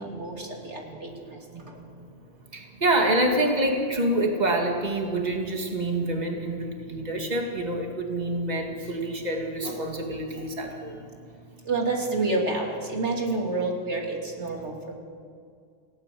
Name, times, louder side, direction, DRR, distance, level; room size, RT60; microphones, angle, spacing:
voice 1, 0.0-1.3 11.7-14.9, right 3 dB, 85° right, 0 dB, 3.2 m, -29 dB
voice 2, 1.5-2.1 2.5-11.1, right 1 dB, 40° right, 1 dB, 2.5 m, -27 dB
29.5 x 17.5 x 7.8 m, 2.3 s
omnidirectional pair, 1.1 m